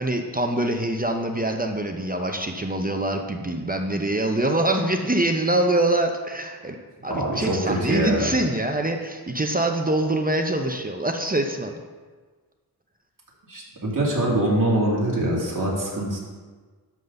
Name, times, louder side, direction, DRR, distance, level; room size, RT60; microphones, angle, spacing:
voice 1, 0.0-6.8 7.0-11.7, right 1 dB, 25° right, 4 dB, 0.7 m, -24 dB
voice 2, 7.1-8.3 13.5-16.2, right 1 dB, 55° right, -4 dB, 2.5 m, -24 dB
10.5 x 4.0 x 6.9 m, 1.4 s
wide cardioid pair, 85°, 38 cm